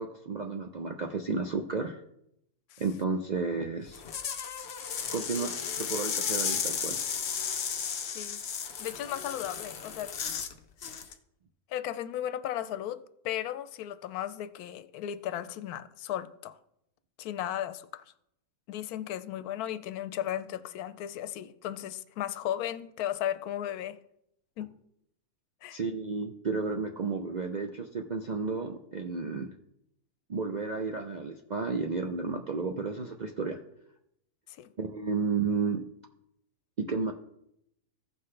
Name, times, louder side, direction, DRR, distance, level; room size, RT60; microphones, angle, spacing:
voice 1, 0.0-2.0 2.8-4.0 5.1-7.0 25.7-29.5 30.3-33.6 34.8-35.8 36.8-37.1, right 4 dB, 65° right, 0.4 m, -32 dB
sound 1, 3.9-10.5 10.8-11.1, left 7 dB, 55° left, 0.9 m, -34 dB
voice 2, 8.8-10.1 11.7-16.6 17.2-18.0 18.7-24.0 24.6-24.7 25.6-25.8 34.5-34.7, left 11 dB, 90° left, 1.1 m, -35 dB
15.5 x 5.8 x 3.2 m
omnidirectional pair, 1.5 m